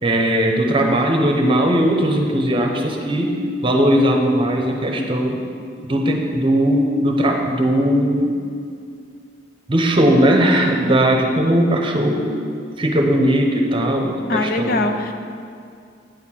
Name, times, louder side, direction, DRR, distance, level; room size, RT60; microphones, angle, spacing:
voice 1, 0.0-5.4 5.9-8.3 9.7-12.4 12.8-14.8, right 1 dB, 25° right, 2 dB, 0.9 m, -18 dB
voice 2, 14.3-15.1, left 2 dB, 50° left, 6 dB, 0.6 m, -21 dB
9.1 x 4.3 x 7.3 m, 2.3 s
head